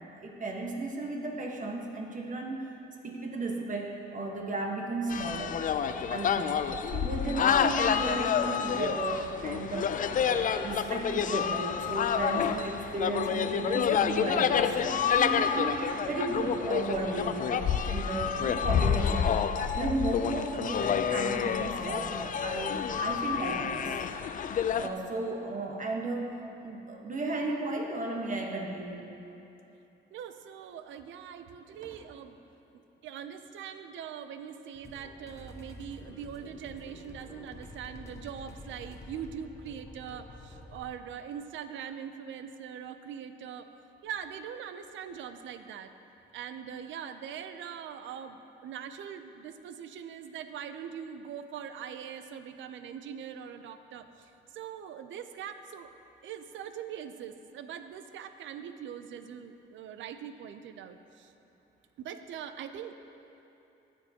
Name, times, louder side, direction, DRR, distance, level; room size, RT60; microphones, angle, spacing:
voice 1, 0.0-2.7 3.0-5.5 5.9-19.3 19.7-23.9 24.8-26.3 26.6-29.1 31.7-31.9, right 2 dB, 40° right, 1 dB, 1.2 m, -34 dB
sound 1, 5.1-24.9, left 7 dB, 45° left, 0.4 m, -29 dB
voice 2, 30.1-32.4 33.0-43.7 44.0-45.9 46.3-61.3 62.0-62.9, right 8 dB, 75° right, 10 dB, 0.5 m, -42 dB
sound 2, 34.7-40.8, left 1 dB, 15° left, 1.1 m, -48 dB
14.0 x 7.1 x 2.9 m, 2.9 s
cardioid pair, 90°, 20 cm